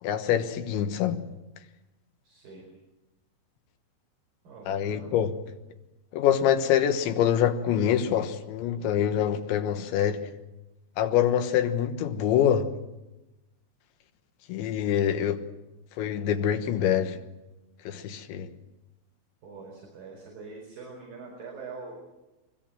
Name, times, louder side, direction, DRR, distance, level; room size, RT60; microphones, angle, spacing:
voice 1, 0.0-1.2 4.7-5.4 6.1-10.3 11.0-12.7 14.5-15.5 16.0-17.2 17.9-18.5, left 9 dB, 85° left, 3.6 m, -25 dB
voice 2, 2.2-2.6 4.4-5.1 19.4-21.9, right 4 dB, 50° right, 6.4 m, -43 dB
24.0 x 21.5 x 7.6 m
omnidirectional pair, 5.2 m